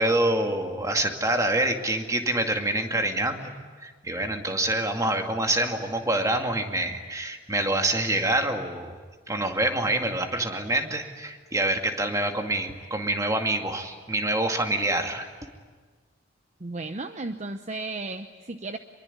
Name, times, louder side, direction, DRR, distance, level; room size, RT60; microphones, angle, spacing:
voice 1, 0.0-3.5 3.8-9.0 9.3-15.3, right 1 dB, 20° right, 4 dB, 2.3 m, -26 dB
voice 2, 16.6-18.8, right 2 dB, 40° right, 8 dB, 0.8 m, -34 dB
25.5 x 22.5 x 9.8 m, 1.5 s
head